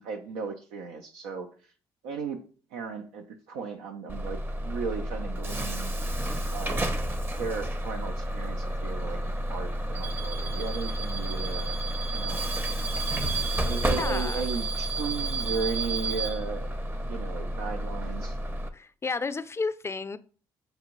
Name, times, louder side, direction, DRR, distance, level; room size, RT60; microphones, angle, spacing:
voice 1, 0.0-1.5 2.0-2.4 2.7-5.9 6.5-6.9 7.3-11.8 12.1-12.4 13.6-16.7 17.1-18.3, right 5 dB, 90° right, 4 dB, 0.4 m, -35 dB
Bus / Alarm, 4.1-18.7, right 1 dB, 20° right, 0.6 m, -30 dB
voice 2, 14.0-14.5 18.7-20.2, left 4 dB, 25° left, 12 dB, 0.4 m, -32 dB
6.5 x 2.6 x 3.0 m, 0.40 s
supercardioid pair, 60°, 11 cm